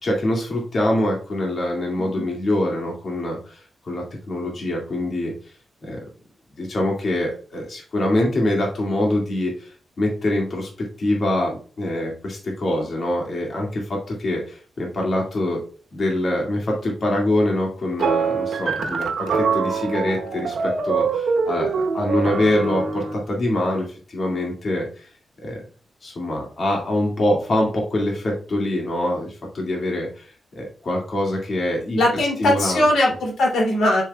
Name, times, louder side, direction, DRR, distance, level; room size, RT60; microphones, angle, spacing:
voice 1, 0.0-5.3 5.8-6.0 6.6-15.6 15.9-25.1 25.4-25.6 26.0-32.0 32.4-32.8, left 1 dB, 50° left, -1 dB, 2.1 m, -24 dB
sound 1, 18.0-23.2, right 5 dB, 85° right, 1.0 m, -24 dB
voice 2, 32.0-34.0, left 1 dB, 90° left, -2 dB, 2.6 m, -20 dB
7.2 x 6.4 x 2.3 m, 0.39 s
cardioid pair, 100°, 0 cm